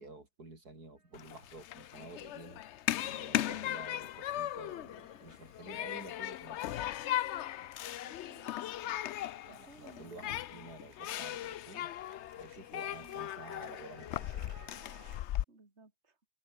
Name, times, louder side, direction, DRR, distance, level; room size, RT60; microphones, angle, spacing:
voice 1, 0.0-2.6 3.0-6.9 9.4-11.9 12.4-14.6, right 2 dB, 65° right, 5.9 m, -51 dB
sound 1, 1.0-15.2, right 2 dB, 20° right, 3.0 m, -64 dB
Human group actions, 1.1-15.4, left 12 dB, 80° left, 0.6 m, -38 dB
voice 2, 4.5-5.4 5.8-5.9 7.9-8.5 9.5-10.8 12.9-13.2 15.5-16.2, right 3 dB, 40° right, 3.6 m, -60 dB
omnidirectional pair, 1.8 m